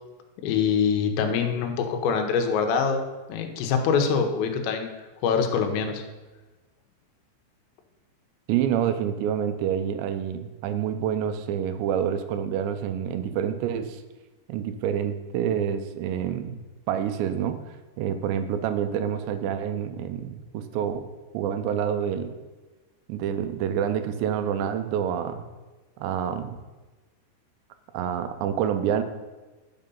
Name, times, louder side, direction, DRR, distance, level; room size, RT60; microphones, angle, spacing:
voice 1, 0.4-3.0 3.3-4.9 5.2-6.0, left 6 dB, 80° left, 4 dB, 3.1 m, -24 dB
voice 2, 8.5-14.0 14.5-16.6 16.9-17.6 18.0-21.1 21.3-22.3 23.1-25.5 26.0-26.6 27.9-29.0, right 9 dB, 85° right, 9 dB, 2.9 m, -27 dB
10.5 x 5.6 x 5.4 m, 1.2 s
omnidirectional pair, 5.1 m